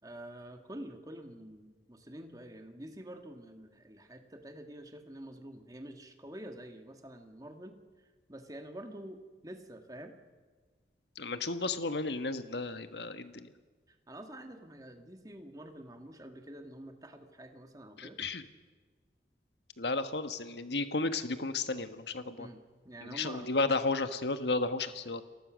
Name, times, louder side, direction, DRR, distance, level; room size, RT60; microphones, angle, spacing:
voice 1, 0.0-7.8 8.3-10.1 13.9-18.2 22.4-23.5, right 1 dB, 20° right, 6 dB, 1.9 m, -47 dB
voice 2, 11.2-13.5 18.0-18.4 19.8-22.5 23.1-25.2, left 3 dB, 70° left, 10 dB, 1.4 m, -33 dB
30.0 x 19.5 x 6.4 m, 1.4 s
head